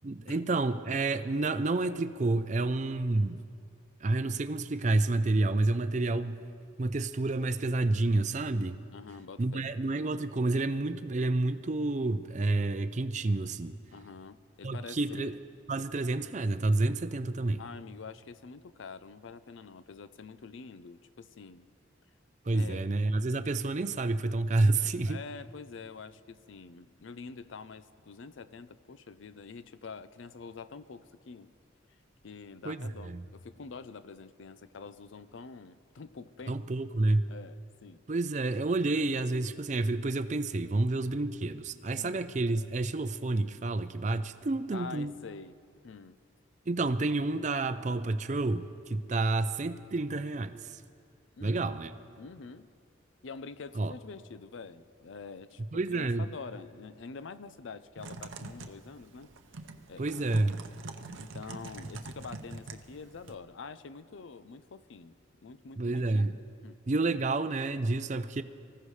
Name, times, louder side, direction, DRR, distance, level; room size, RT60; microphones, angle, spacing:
voice 1, 0.0-3.4 4.0-6.5 6.8-8.8 9.4-13.7 14.6-15.3 15.7-17.6 22.5-25.2 32.6-33.2 36.5-37.2 38.1-45.1 46.7-50.8 51.4-51.9 53.8-53.9 55.7-56.3 60.0-60.6 65.8-66.3 66.9-68.4, right 2 dB, 35° right, 11 dB, 0.5 m, -29 dB
voice 2, 8.9-9.7 13.9-15.3 17.6-21.7 22.5-22.8 25.0-31.5 32.2-36.6 37.3-38.0 41.9-42.2 44.7-46.2 51.4-51.7 52.2-52.7 53.2-59.3 59.9-60.5 61.2-65.2 65.4-66.2 66.6-66.8, left 4 dB, 75° left, 14 dB, 0.5 m, -46 dB
Typing, 58.0-63.4, right 3 dB, 80° right, 0.8 m, -44 dB
24.5 x 15.0 x 3.2 m, 2.3 s
head